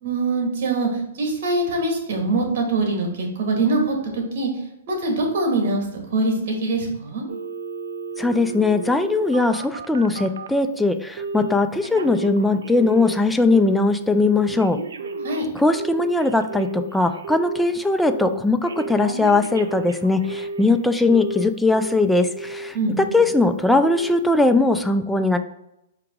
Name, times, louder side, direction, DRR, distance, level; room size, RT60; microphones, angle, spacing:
voice 1, 0.0-4.5 4.9-7.3 15.2-15.5 22.7-23.2, right 2 dB, 60° right, 1 dB, 1.6 m, -23 dB
Telephone, 7.3-10.6 11.2-11.6 11.8-13.2 13.5-13.9 14.2-17.6 18.0-18.4 18.7-20.7 21.1-22.0 22.3-22.7 23.1-23.5 23.8-24.2 24.6-24.7, right 3 dB, 85° right, 0.4 m, -32 dB
voice 2, 8.2-14.8 15.5-25.4, left 2 dB, 5° left, 7 dB, 0.3 m, -20 dB
4.7 x 2.9 x 3.6 m, 0.85 s
hypercardioid pair, 140°, 0 cm